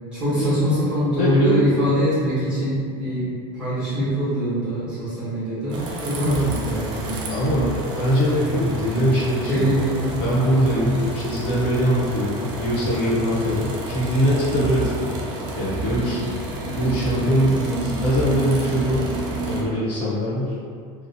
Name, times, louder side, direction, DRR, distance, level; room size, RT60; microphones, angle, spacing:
voice 1, 0.1-3.3 3.5-7.7 9.5-10.2 10.9-11.0 17.5-17.9, equal, 5° right, -13 dB, 1.0 m, -23 dB
voice 2, 1.2-1.8 3.2-3.3 7.3-9.6 10.2-15.1 15.5-16.3 16.7-17.7 18.0-19.2 19.4-20.6, equal, 65° left, -8 dB, 0.8 m, -22 dB
sound 1, 5.7-19.6, right 1 dB, 30° right, 0.3 m, -30 dB
2.7 x 2.0 x 2.7 m, 2.1 s
cardioid pair, 175°, 14 cm